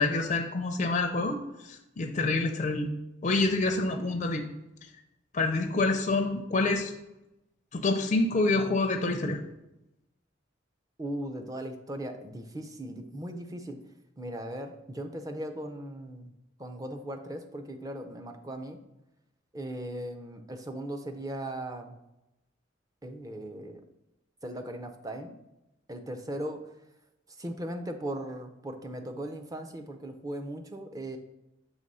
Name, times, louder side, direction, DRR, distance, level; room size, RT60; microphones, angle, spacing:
voice 1, 0.0-2.9 3.2-4.5 5.3-6.9 7.7-9.4, left 3 dB, 40° left, 3 dB, 0.4 m, -27 dB
voice 2, 11.0-13.8 14.2-16.3 16.6-18.8 19.5-22.0 23.0-23.8 24.4-25.4 25.9-26.6 27.4-31.2, right 1 dB, 20° right, 5 dB, 0.5 m, -38 dB
6.4 x 3.0 x 5.4 m, 0.91 s
head